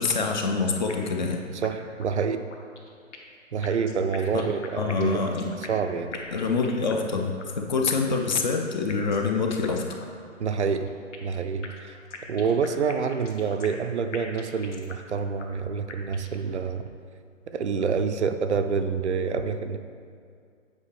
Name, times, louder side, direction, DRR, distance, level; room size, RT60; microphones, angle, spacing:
voice 1, 0.0-1.4 4.3-4.4 4.8-5.5 6.3-9.9, left 4 dB, 35° left, 3 dB, 0.5 m, -26 dB
sound 1, 0.9-1.3 1.6-1.7 2.0-2.1 2.5-3.4 3.6-5.9 6.1-7.1 7.4-7.5 7.9-8.4 8.9-9.3 9.6-9.7 10.0-10.1 10.5-11.4 11.6-13.9 14.1-15.1 15.4-15.5 15.9-16.4, left 4 dB, 65° left, 1.0 m, -42 dB
voice 2, 1.5-2.4 3.5-5.4 5.7-6.1 10.4-10.9 11.2-12.0 12.3-16.8 17.5-19.8, right 5 dB, 65° right, 8 dB, 0.5 m, -27 dB
8.3 x 4.7 x 3.2 m, 2.2 s
figure-of-eight pair, 125°, 38 cm